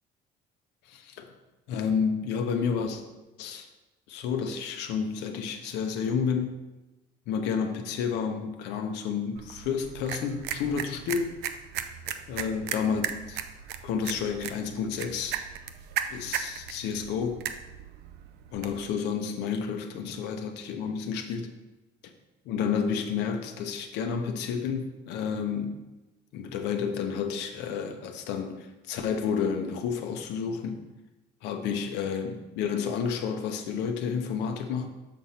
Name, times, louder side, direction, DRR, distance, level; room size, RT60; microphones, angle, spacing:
voice 1, 0.9-1.3 1.7-3.0 3.4-3.7 4.1-6.6 7.3-11.3 12.3-13.4 13.8-15.4 16.1-17.4 18.5-21.5 22.5-25.8 26.3-30.8 31.4-34.9, left 6 dB, 90° left, 5 dB, 0.8 m, -30 dB
sound 1, 9.4-18.9, right 9 dB, 80° right, 0.5 m, -37 dB
6.3 x 5.7 x 4.2 m, 1.1 s
cardioid pair, 110°, 17 cm